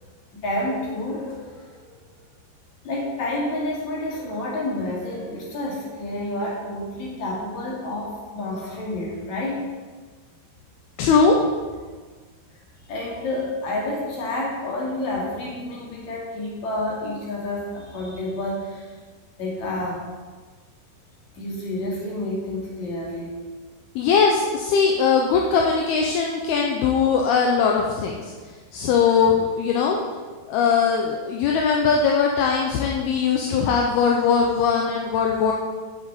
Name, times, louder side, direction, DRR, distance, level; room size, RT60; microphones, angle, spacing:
voice 1, 0.3-1.9 2.8-9.6 12.9-18.9 19.4-20.0 21.4-23.4, left 1 dB, 45° left, -4 dB, 3.6 m, -29 dB
voice 2, 11.0-11.4 24.0-30.0 30.5-35.5, left 5 dB, 75° left, 0 dB, 2.7 m, -20 dB
8.1 x 8.0 x 8.0 m, 1.4 s
omnidirectional pair, 4.8 m